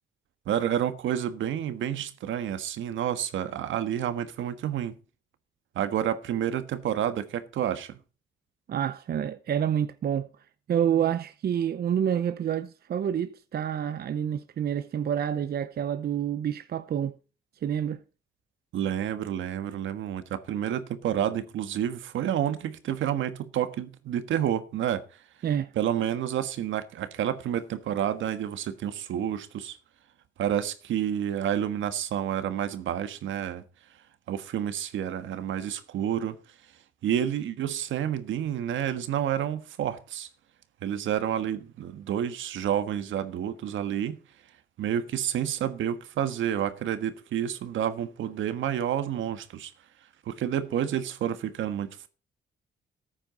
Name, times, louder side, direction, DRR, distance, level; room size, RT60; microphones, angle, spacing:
voice 1, 0.5-5.0 5.7-8.0 18.7-25.0 25.7-29.8 30.4-33.6 34.3-36.4 37.0-40.3 40.8-44.2 44.8-49.7 50.3-52.1, right 10 dB, 75° right, 1.5 m, -29 dB
voice 2, 8.7-10.3 10.7-17.1 17.6-18.0 25.4-25.7, right 9 dB, 50° right, 0.7 m, -28 dB
14.0 x 8.9 x 3.9 m
cardioid pair, 90°, 20 cm